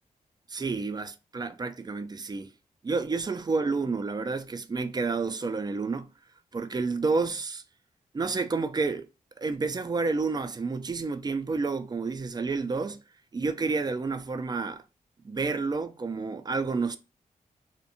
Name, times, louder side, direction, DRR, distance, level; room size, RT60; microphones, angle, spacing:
voice 1, 0.5-2.5 2.8-6.1 6.5-7.6 8.1-9.1 9.4-13.0 13.3-14.8 15.2-17.0, right 4 dB, 30° right, 0.3 m, -30 dB
2.6 x 2.1 x 2.6 m
cardioid pair, 55°, 15 cm